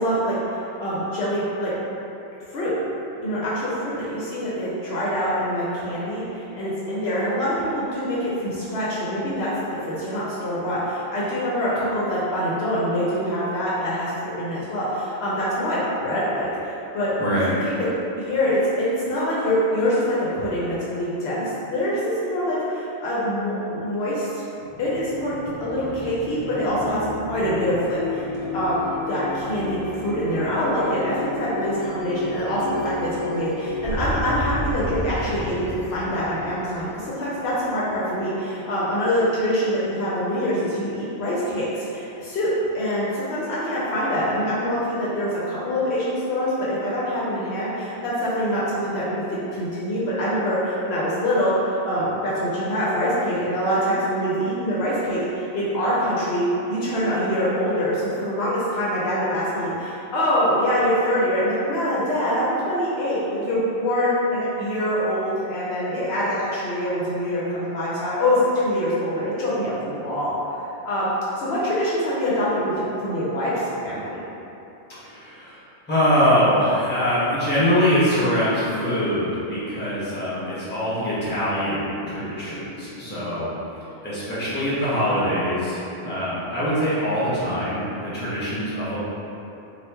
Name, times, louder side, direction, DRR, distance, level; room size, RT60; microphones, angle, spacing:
voice 1, 0.0-1.7 2.5-2.7 3.2-17.1 17.6-21.4 21.7-24.4 24.8-25.3 25.6-28.2 28.5-28.8 29.1-42.5 42.7-49.2 49.5-70.6 70.9-71.1 71.4-72.7 73.0-74.2, equal, 65° left, -8 dB, 0.8 m, -24 dB
voice 2, 17.2-17.5 75.0-75.6 75.9-89.0, equal, 10° left, -10 dB, 0.7 m, -23 dB
sound 1, 24.6-38.1, left 1 dB, 35° right, 0.5 m, -32 dB
2.9 x 2.4 x 3.3 m, 2.9 s
omnidirectional pair, 1.2 m